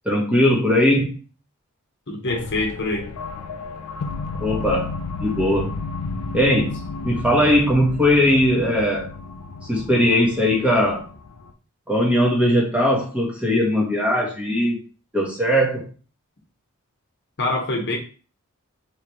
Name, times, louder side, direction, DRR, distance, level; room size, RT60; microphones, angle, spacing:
voice 1, 0.0-1.2 4.4-4.9 5.2-5.8 6.3-9.1 9.7-11.1 11.9-14.8 15.1-15.8, equal, 5° right, -2 dB, 1.0 m, -19 dB
voice 2, 2.1-3.1 17.4-18.0, left 2 dB, 55° left, 0 dB, 1.0 m, -25 dB
sound 1, 2.3-11.5, left 4 dB, 85° left, 0.5 m, -32 dB
4.1 x 3.2 x 3.0 m, 0.36 s
head